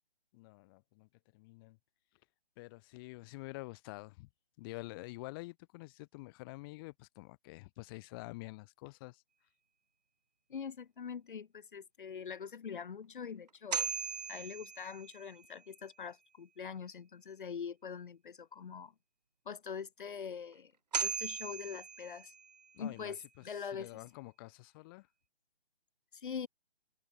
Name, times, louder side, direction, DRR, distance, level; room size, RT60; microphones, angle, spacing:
voice 1, 0.3-1.8 2.6-4.3 4.6-9.2 22.7-23.1 23.6-25.1, left 23 dB, 20° left, 2.8 m, -48 dB
voice 2, 10.5-13.9 14.3-18.9 19.5-20.7 21.0-22.3 22.8-24.1 26.1-26.5, left 6 dB, 50° left, 2.5 m, -43 dB
sound 1, 13.5-15.6 20.5-20.6 20.9-22.8, right 6 dB, 40° right, 0.4 m, -38 dB
figure-of-eight pair, 145°, 33 cm